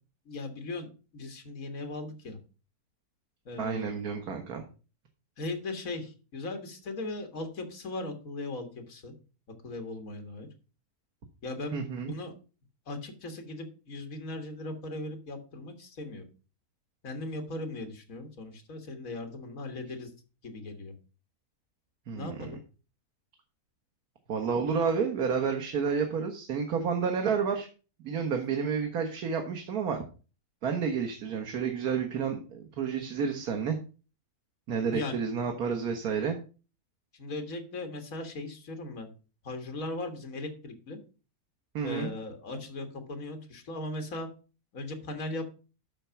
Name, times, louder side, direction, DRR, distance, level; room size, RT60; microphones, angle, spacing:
voice 1, 0.3-0.9 1.1-2.4 3.5-3.9 5.4-9.1 9.6-10.5 11.4-12.3 12.9-16.3 17.0-20.1 20.4-20.9 22.1-22.6 34.9-35.3 37.1-39.1 39.4-41.0 41.8-44.3 44.7-45.5, left 2 dB, 65° left, 6 dB, 2.1 m, -38 dB
voice 2, 3.6-4.6 11.7-12.1 22.1-22.5 24.3-27.7 28.0-30.0 30.6-33.8 34.7-36.4 41.7-42.1, right 6 dB, 85° right, 4 dB, 1.7 m, -30 dB
8.9 x 6.1 x 5.7 m, 0.35 s
omnidirectional pair, 1.5 m